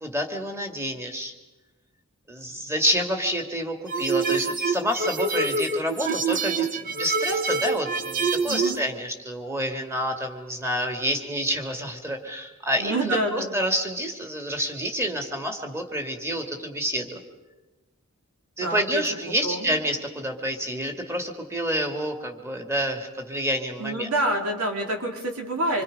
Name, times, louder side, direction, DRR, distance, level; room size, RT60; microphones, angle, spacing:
voice 1, 0.0-1.3 2.3-17.2 18.6-24.1, equal, 10° right, 4 dB, 2.1 m, -28 dB
sound 1, 3.9-8.8, right 4 dB, 40° right, 1.2 m, -26 dB
voice 2, 12.7-13.5 18.6-19.0 19.4-19.8 23.8-25.8, right 1 dB, 85° right, 1 dB, 3.3 m, -27 dB
26.0 x 25.5 x 5.3 m, 1.1 s
head